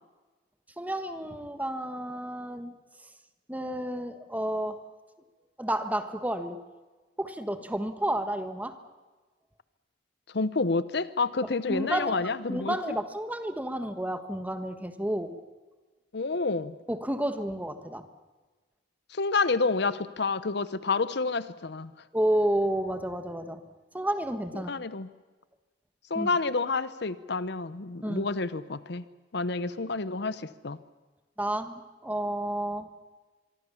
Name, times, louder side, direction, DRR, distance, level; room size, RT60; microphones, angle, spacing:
voice 1, 0.8-2.7 3.5-4.8 5.6-6.6 7.2-8.8 11.4-15.3 16.9-18.1 22.1-23.6 23.9-24.7 26.1-26.3 28.0-28.3 31.4-32.9, right 1 dB, 10° right, 9 dB, 1.5 m, -31 dB
voice 2, 10.3-12.8 16.1-16.8 19.1-21.9 24.5-25.1 26.1-29.0 29.3-30.8, left 3 dB, 65° left, 15 dB, 0.9 m, -29 dB
24.0 x 24.0 x 7.1 m, 1.3 s
head